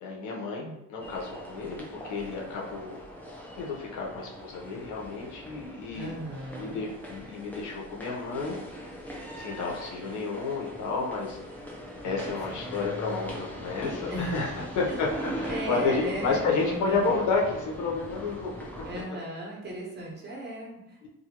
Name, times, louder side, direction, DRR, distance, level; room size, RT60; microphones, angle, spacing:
voice 1, 0.0-3.0 3.6-6.2 6.6-8.6 9.4-11.4 12.0-15.1 15.3-18.5 21.0-21.1, left 4 dB, 75° left, -1 dB, 0.9 m, -31 dB
sound 1, 1.0-19.0, equal, 5° left, 0.7 m, -41 dB
voice 2, 5.9-6.8 12.0-12.8 14.1-15.0 15.5-17.1 18.8-21.1, right 1 dB, 35° right, -3 dB, 1.2 m, -37 dB
2.6 x 2.6 x 2.9 m, 0.89 s
cardioid pair, 90°, 30 cm